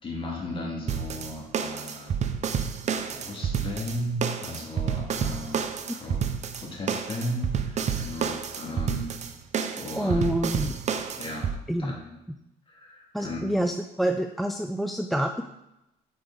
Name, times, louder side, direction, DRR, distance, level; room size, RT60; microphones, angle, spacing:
voice 1, 0.0-2.2 2.9-5.6 6.0-6.2 6.5-9.1 9.8-10.3 11.2-11.5 11.8-12.2 12.7-13.5, left 1 dB, 30° left, -2 dB, 2.4 m, -35 dB
sound 1, 0.9-11.6, right 7 dB, 45° right, 0.6 m, -30 dB
voice 2, 10.0-10.8 11.7-12.0 13.1-15.4, equal, ahead, 5 dB, 0.4 m, -27 dB
9.1 x 4.8 x 3.9 m, 0.90 s
cardioid pair, 110°, 17 cm